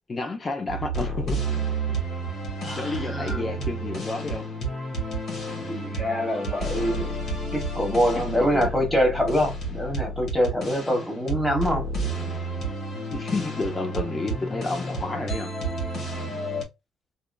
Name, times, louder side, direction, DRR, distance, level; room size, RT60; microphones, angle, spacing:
voice 1, 0.1-1.5 2.7-4.5 8.1-8.7 13.1-15.5, left 3 dB, 35° left, 0.6 m, -30 dB
sound 1, 0.7-16.6, right 2 dB, 60° left, 1.5 m, -31 dB
voice 2, 2.6-3.6 5.7-7.2 7.5-11.8, equal, 5° left, 1.3 m, -25 dB
2.7 x 2.5 x 2.3 m
cardioid pair, 90°, 0 cm